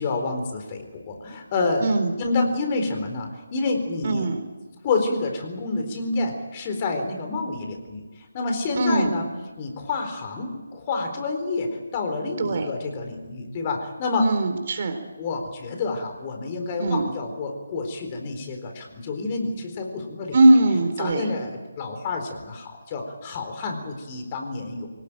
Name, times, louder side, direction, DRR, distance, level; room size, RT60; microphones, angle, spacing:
voice 1, 0.0-1.9 2.2-4.3 4.8-9.3 9.6-14.3 15.2-20.4 21.0-24.9, left 3 dB, 25° left, 5 dB, 4.1 m, -28 dB
voice 2, 1.8-2.1 4.0-4.4 8.7-9.1 12.4-12.7 14.2-15.0 16.8-17.1 20.3-21.2, right 2 dB, 40° right, 6 dB, 3.9 m, -20 dB
24.0 x 18.5 x 9.1 m, 1.2 s
figure-of-eight pair, 155°, 0 cm